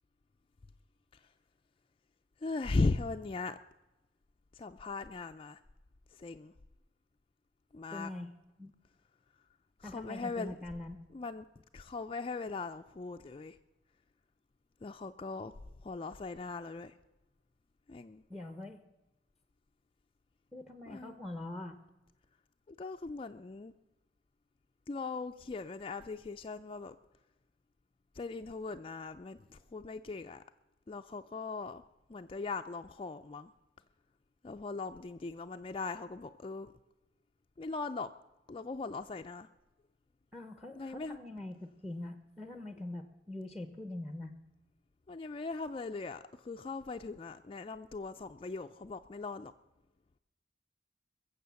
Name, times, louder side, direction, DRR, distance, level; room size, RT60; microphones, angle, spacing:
voice 1, 2.4-3.6 4.5-5.6 6.2-6.5 7.7-8.1 9.8-10.5 11.1-11.5 11.7-13.6 14.8-15.5 15.8-16.9 17.9-18.2 20.9-21.1 22.8-23.7 24.9-26.9 28.2-30.4 30.9-31.8 32.1-33.5 34.4-36.7 37.6-38.1 38.5-39.5 40.8-41.2 45.1-49.5, left 3 dB, 30° left, 7 dB, 0.4 m, -39 dB
voice 2, 7.9-8.3 8.6-8.7 9.8-11.0 18.3-18.8 20.5-21.8 40.3-44.3, left 1 dB, ahead, 9 dB, 0.8 m, -43 dB
21.5 x 7.5 x 7.0 m, 1.0 s
head